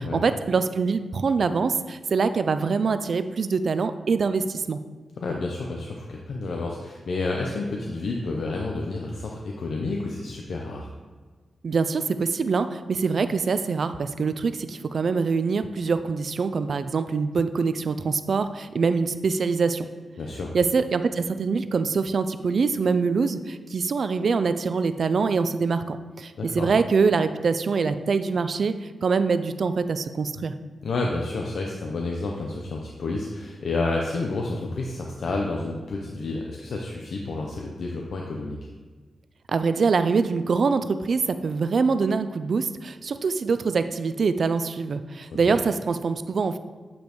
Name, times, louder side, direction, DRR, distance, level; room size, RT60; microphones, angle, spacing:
voice 1, 0.0-4.8 11.6-19.9 20.5-30.5 39.5-46.6, right 5 dB, 55° right, 11 dB, 0.3 m, -24 dB
voice 2, 5.2-10.9 20.2-20.6 26.4-26.7 30.8-38.6, left 3 dB, 70° left, 0 dB, 0.7 m, -30 dB
8.5 x 5.2 x 3.1 m, 1.4 s
wide cardioid pair, 125°, 0 cm